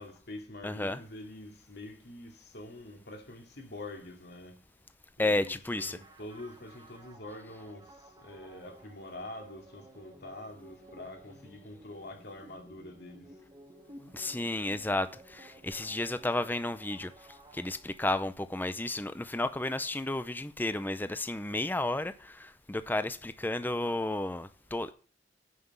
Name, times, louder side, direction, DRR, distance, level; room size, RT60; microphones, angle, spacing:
voice 1, 0.0-4.6 5.2-7.9 8.2-13.3, left 1 dB, 60° left, 2.5 m, -45 dB
voice 2, 0.6-1.0 5.2-6.0 14.1-24.9, left 2 dB, 10° left, 0.5 m, -32 dB
sound 1, 5.7-18.3, right 1 dB, 25° right, 1.7 m, -55 dB
9.3 x 6.0 x 7.9 m
head